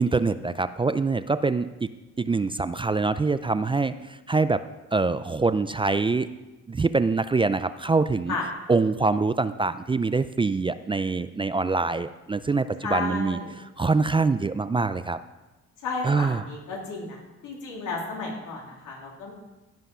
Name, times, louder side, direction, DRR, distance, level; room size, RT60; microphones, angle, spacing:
voice 1, 0.0-1.9 2.2-4.6 4.9-6.3 6.7-8.4 8.7-13.4 13.8-15.2 16.0-16.4, right 3 dB, 15° right, 12 dB, 0.4 m, -24 dB
voice 2, 12.8-13.5 15.8-17.2 17.4-19.3, left 3 dB, 85° left, -2 dB, 3.4 m, -33 dB
15.5 x 5.6 x 6.2 m, 1.1 s
cardioid pair, 90°, 30 cm